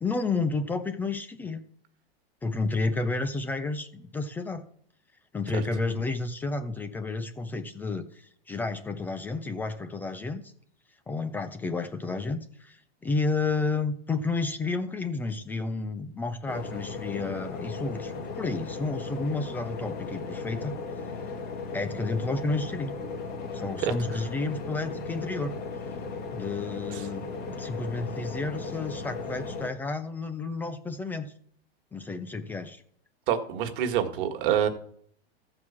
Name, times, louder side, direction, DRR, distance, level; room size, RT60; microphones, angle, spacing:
voice 1, 0.0-1.6 2.4-4.6 5.3-10.5 11.1-20.7 21.7-22.9 23.5-25.5 26.3-31.3 31.9-32.8, left 3 dB, 5° left, 9 dB, 0.3 m, -31 dB
sound 1, 16.5-29.7, left 4 dB, 30° left, 1.6 m, -36 dB
voice 2, 33.3-34.7, right 9 dB, 55° right, 6 dB, 1.6 m, -26 dB
14.0 x 4.8 x 7.1 m, 0.65 s
hypercardioid pair, 145°, 32 cm